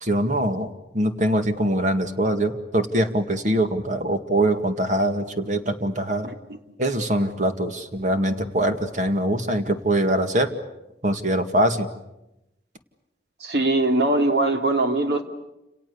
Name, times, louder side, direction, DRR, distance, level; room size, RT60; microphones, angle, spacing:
voice 1, 0.0-6.3 6.8-10.5 11.0-11.9, right 1 dB, 45° right, 7 dB, 2.0 m, -23 dB
voice 2, 13.4-15.2, right 2 dB, 70° right, 5 dB, 3.0 m, -21 dB
30.0 x 28.5 x 7.0 m, 0.92 s
head